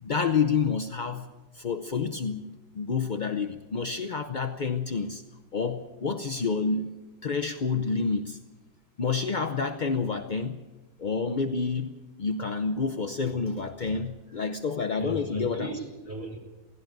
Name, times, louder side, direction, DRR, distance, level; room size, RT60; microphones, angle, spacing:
voice 1, 0.0-1.3 1.5-2.4 2.7-5.2 5.5-6.9 7.2-8.4 9.0-10.6 11.0-15.7, left 5 dB, 50° left, 7 dB, 0.5 m, -28 dB
voice 2, 13.9-14.6 14.9-16.4, right 2 dB, 5° right, 0 dB, 5.3 m, -39 dB
17.0 x 16.5 x 9.2 m, 1.2 s
omnidirectional pair, 2.0 m